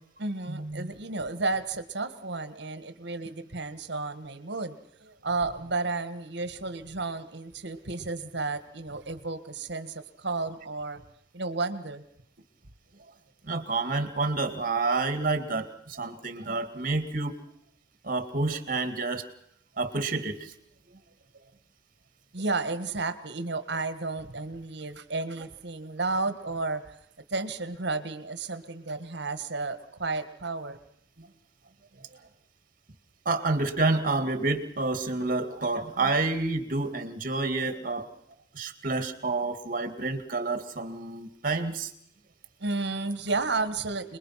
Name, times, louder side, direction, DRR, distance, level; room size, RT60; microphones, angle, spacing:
voice 1, 0.2-11.0 11.3-12.0 22.3-27.0 27.3-30.8 42.6-44.2, right 3 dB, 65° right, 11 dB, 1.7 m, -32 dB
voice 2, 13.4-17.3 18.0-19.2 19.8-20.5 31.2-31.3 33.3-38.1 38.5-41.9, right 3 dB, 50° right, 8 dB, 2.2 m, -29 dB
27.5 x 21.5 x 5.8 m, 0.69 s
head